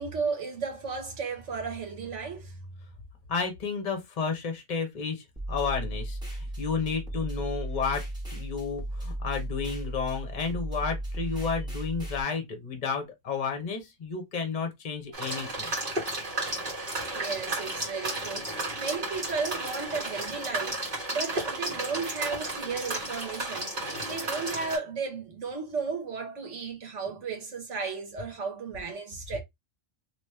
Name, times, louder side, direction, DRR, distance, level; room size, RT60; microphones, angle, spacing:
voice 1, 0.0-2.5 17.1-29.4, right 5 dB, 75° right, 1.5 m, -34 dB
voice 2, 3.3-8.0 8.3-15.7, left 5 dB, 40° left, 1.0 m, -32 dB
sound 1, 5.4-12.2, right 1 dB, 5° right, 1.5 m, -35 dB
sound 2, 15.1-24.8, right 2 dB, 40° right, 1.7 m, -33 dB
3.1 x 2.9 x 3.2 m
omnidirectional pair, 1.2 m